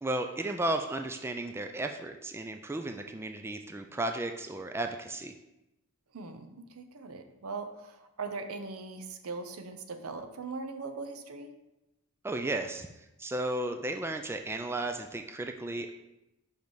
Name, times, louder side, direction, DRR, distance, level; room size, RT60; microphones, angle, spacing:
voice 1, 0.0-5.3 12.2-15.9, right 2 dB, 10° right, 5 dB, 0.3 m, -34 dB
voice 2, 6.1-11.5, right 4 dB, 75° right, 7 dB, 0.7 m, -40 dB
5.3 x 5.1 x 4.6 m, 0.93 s
head